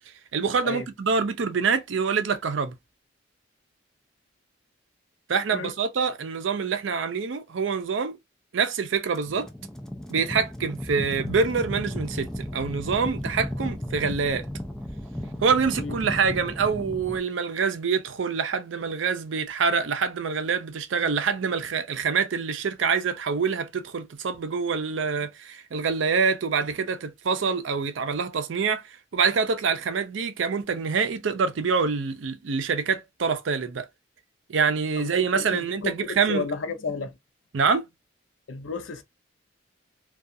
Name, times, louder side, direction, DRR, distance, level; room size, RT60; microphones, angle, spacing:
voice 1, 0.3-2.7 5.3-8.1 8.5-9.5 10.1-14.5 15.4-33.9 34.5-36.5 37.5-37.8, right 5 dB, 75° right, 0.5 m, -26 dB
sound 1, 9.1-17.2, equal, 5° left, 0.3 m, -34 dB
voice 2, 35.0-37.2 38.5-39.0, left 4 dB, 80° left, 0.5 m, -32 dB
2.4 x 2.3 x 2.6 m
head